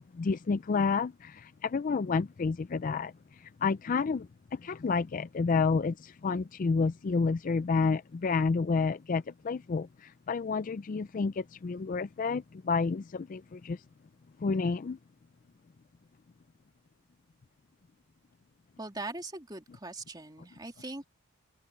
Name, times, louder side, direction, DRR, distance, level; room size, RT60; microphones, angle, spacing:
voice 1, 0.0-13.8 14.4-15.0, left 4 dB, 35° left, 0.3 m, -30 dB
voice 2, 18.8-21.1, right 2 dB, 20° right, 3.1 m, -41 dB
head